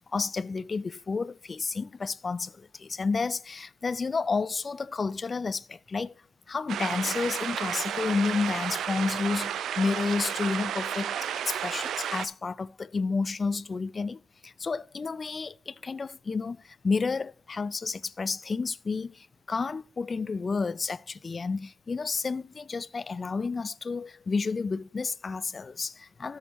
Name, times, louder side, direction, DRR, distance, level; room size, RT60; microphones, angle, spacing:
voice 1, 0.0-6.1 6.5-11.2 11.5-26.4, left 4 dB, 35° left, 0.3 m, -31 dB
sound 1, 6.7-12.3, right 9 dB, 75° right, 0.4 m, -32 dB
13.5 x 6.4 x 3.0 m
cardioid pair, 110°, 0 cm